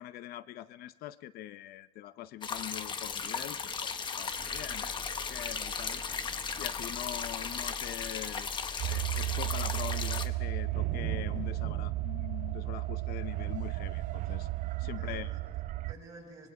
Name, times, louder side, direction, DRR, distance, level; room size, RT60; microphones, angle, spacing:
voice 1, 0.0-6.0 6.6-14.5 14.8-15.3, left 13 dB, 80° left, 14 dB, 0.8 m, -43 dB
sound 1, 2.4-10.3, left 6 dB, 30° left, 1.1 m, -36 dB
Engine, 4.4-11.6, left 3 dB, 5° left, 1.3 m, -48 dB
sound 2, 8.8-15.9, right 18 dB, 55° right, 0.6 m, -34 dB
voice 2, 14.8-16.5, right 2 dB, 20° right, -2 dB, 7.9 m, -53 dB
25.0 x 21.5 x 4.8 m, 1.2 s
cardioid pair, 170°, 16 cm